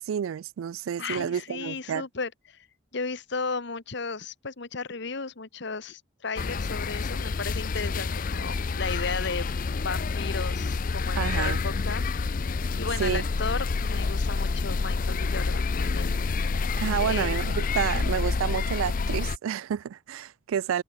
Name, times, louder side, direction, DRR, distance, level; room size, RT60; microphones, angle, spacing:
voice 1, 0.0-2.0 11.2-11.6 13.0-13.2 16.8-20.8, right 8 dB, 85° right, 0.3 m, -29 dB
voice 2, 1.0-2.7 2.9-9.5 9.8-12.4 12.7-16.2 17.0-17.4 17.8-18.1, left 4 dB, 60° left, 1.2 m, -35 dB
sound 1, 6.4-19.4, left 4 dB, 45° left, 0.5 m, -28 dB
open air
head